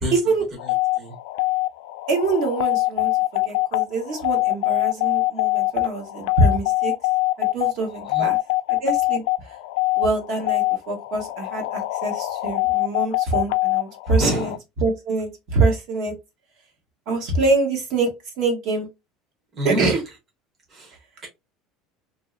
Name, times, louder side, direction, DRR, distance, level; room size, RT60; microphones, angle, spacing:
voice 1, 0.0-0.3 0.6-1.1 8.1-8.3 14.2-14.6 19.5-20.0 20.7-21.3, equal, 20° right, -1 dB, 1.0 m, -28 dB
sound 1, 0.6-14.6, left 20 dB, 85° left, 0.3 m, -23 dB
voice 2, 2.1-6.9 7.4-8.4 8.7-9.2 10.0-14.5 14.8-16.1 17.1-18.1 18.4-18.9 19.6-20.0, right 3 dB, 50° right, 3 dB, 1.2 m, -24 dB
2.9 x 2.8 x 2.4 m, 0.22 s
cardioid pair, 175°, 0 cm